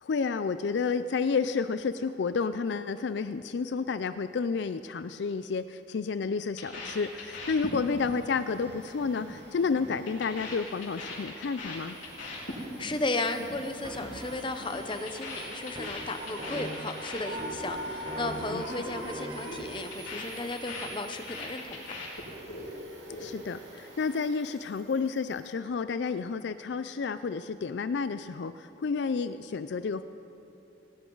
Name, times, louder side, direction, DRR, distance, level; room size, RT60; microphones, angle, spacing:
voice 1, 0.0-12.0 18.5-18.6 23.2-30.0, left 5 dB, 65° left, 12 dB, 0.4 m, -30 dB
sound 1, 6.6-8.1 8.4-8.7 9.0-9.3 9.6-13.0 13.2-13.6 13.8-14.2 14.5-17.8 18.1-18.4 18.7-19.0 19.3-22.7 22.9-23.6, left 3 dB, 85° left, 4.3 m, -41 dB
Domestic sounds home sounds, 6.7-25.5, right 2 dB, 75° right, 2.8 m, -49 dB
voice 2, 12.5-21.8, left 2 dB, 25° left, 8 dB, 0.8 m, -35 dB
sound 2, 13.8-19.6, equal, 30° right, 1.4 m, -40 dB
19.0 x 18.0 x 3.9 m, 2.9 s
head